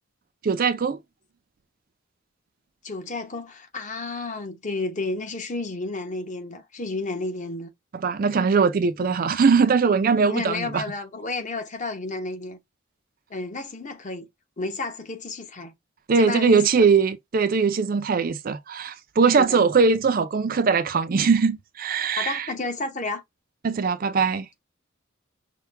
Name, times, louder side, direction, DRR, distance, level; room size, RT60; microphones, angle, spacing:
voice 1, 0.4-1.0 8.0-10.8 16.1-22.5 23.6-24.5, right 5 dB, 45° right, 0.4 m, -21 dB
voice 2, 2.8-7.7 9.0-9.1 10.3-12.6 13.3-14.3 14.6-15.7 16.1-16.6 19.4-19.6 22.2-23.2, left 3 dB, 35° left, 1.0 m, -31 dB
5.7 x 2.2 x 3.3 m
head